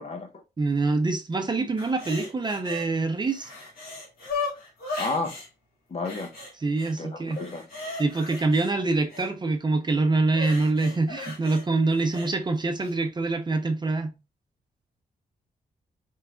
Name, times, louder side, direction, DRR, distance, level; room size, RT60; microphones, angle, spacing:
voice 1, 0.0-0.4 5.0-5.3 5.9-6.3 7.0-7.6, left 3 dB, 45° left, 1.0 m, -31 dB
voice 2, 0.6-3.5 6.6-7.4 8.0-14.1, right 3 dB, 30° right, 0.7 m, -25 dB
sound 1, 1.8-2.9 3.2-5.5 6.0-6.9 7.3-9.3 10.3-12.3 12.8-12.9, left 3 dB, 80° left, 2.2 m, -37 dB
4.6 x 3.6 x 2.3 m
cardioid pair, 100°, 16 cm